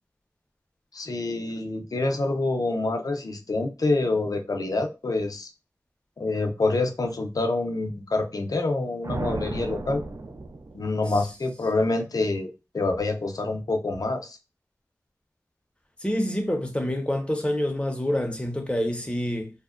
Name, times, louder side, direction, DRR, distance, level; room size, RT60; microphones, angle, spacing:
voice 1, 0.9-5.5 6.2-10.0 10.7-14.4, left 2 dB, 65° left, 0.5 m, -27 dB
sound 1, 9.0-11.3, right 2 dB, 55° right, 0.3 m, -34 dB
voice 2, 16.0-19.5, left 1 dB, 15° left, 0.7 m, -27 dB
2.7 x 2.1 x 2.4 m
wide cardioid pair, 40°, 7 cm